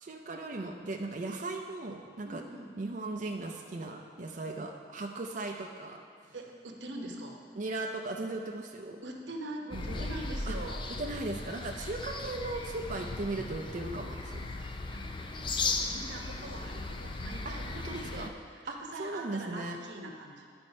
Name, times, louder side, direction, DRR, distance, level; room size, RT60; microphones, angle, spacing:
voice 1, 0.0-2.4 2.8-6.0 7.6-9.0 9.7-10.1 10.5-10.6 11.0-14.5 17.4-18.3 18.7-19.8, right 2 dB, 45° right, 1 dB, 0.5 m, -37 dB
voice 2, 2.2-2.7 4.5-4.6 6.2-7.4 9.0-10.8 14.5-18.3 18.6-20.5, right 1 dB, 90° right, 1 dB, 1.0 m, -43 dB
sound 1, 9.7-18.3, left 3 dB, 30° left, 0.4 m, -37 dB
10.5 x 4.4 x 5.3 m, 2.2 s
head